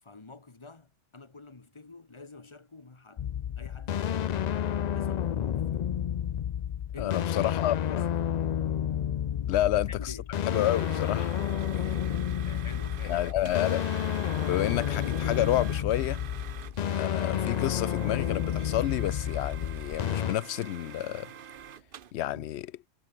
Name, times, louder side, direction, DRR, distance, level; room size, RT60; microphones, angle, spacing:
voice 1, 0.0-3.3 3.6-4.6 4.9-5.9 6.9-8.1 9.6-10.3 11.7-13.2 22.3-22.5, left 3 dB, 30° left, 1.3 m, -48 dB
sound 1, 3.2-20.3, left 10 dB, 55° left, 0.5 m, -30 dB
voice 2, 7.0-8.0 9.5-10.1 10.5-11.3 13.0-13.9 14.4-16.2 17.0-21.3 22.1-22.7, left 13 dB, 90° left, 0.9 m, -29 dB
sound 2, 10.5-22.1, right 8 dB, 60° right, 0.9 m, -46 dB
omnidirectional pair, 1.1 m